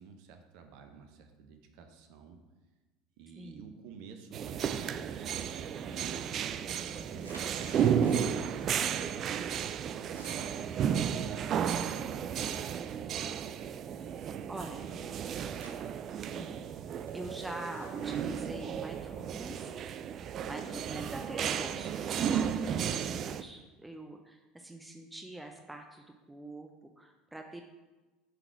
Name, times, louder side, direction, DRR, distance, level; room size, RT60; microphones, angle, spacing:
voice 1, 0.0-2.4 3.2-6.2 6.5-11.0 11.3-15.3, right 5 dB, 65° right, 6 dB, 0.8 m, -52 dB
voice 2, 3.4-3.7 7.2-7.3 14.5-14.8 16.1-16.6 17.1-19.7 20.4-21.9 22.2-26.7 27.0-27.6, right 1 dB, 10° right, 4 dB, 0.7 m, -44 dB
sound 1, 4.3-23.4, right 8 dB, 45° right, 0.3 m, -33 dB
sound 2, 5.1-5.5 5.8-8.5 8.8-9.4 9.6-12.7 13.2-15.8 16.1-19.3, right 2 dB, 90° right, 0.9 m, -56 dB
8.1 x 4.0 x 4.6 m, 1.2 s
hypercardioid pair, 70°, 0 cm